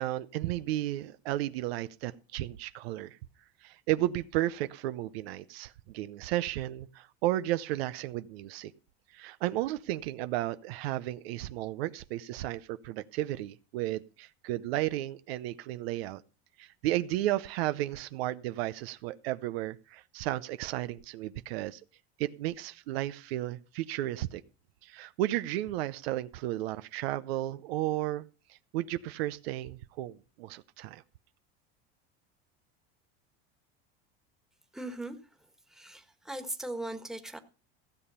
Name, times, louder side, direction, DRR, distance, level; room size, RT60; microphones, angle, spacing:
voice 1, 0.0-3.2 3.6-8.7 9.1-16.2 16.6-21.8 22.2-24.4 24.8-28.3 28.7-31.0, right 15 dB, 90° right, 13 dB, 0.7 m, -33 dB
voice 2, 34.7-35.2 35.7-37.4, right 1 dB, ahead, 6 dB, 1.5 m, -39 dB
15.5 x 6.8 x 5.5 m, 0.36 s
supercardioid pair, 115°, 30 cm